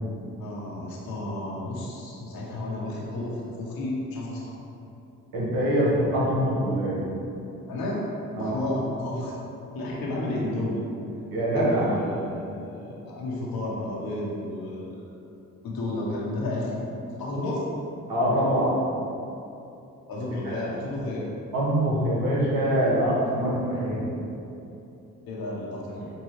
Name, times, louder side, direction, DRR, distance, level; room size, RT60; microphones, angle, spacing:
voice 1, 0.4-4.6 7.7-8.1 8.4-9.4 9.7-10.9 11.5-15.2 15.6-17.6 20.1-21.3 25.2-26.1, left 1 dB, 75° left, -4 dB, 1.0 m, -32 dB
voice 2, 5.3-7.0 8.4-8.5 11.3-12.0 18.1-18.8 20.4-20.7 21.5-24.1, right 1 dB, 70° right, -6 dB, 1.4 m, -24 dB
5.6 x 2.2 x 3.2 m, 2.8 s
supercardioid pair, 55°, 36 cm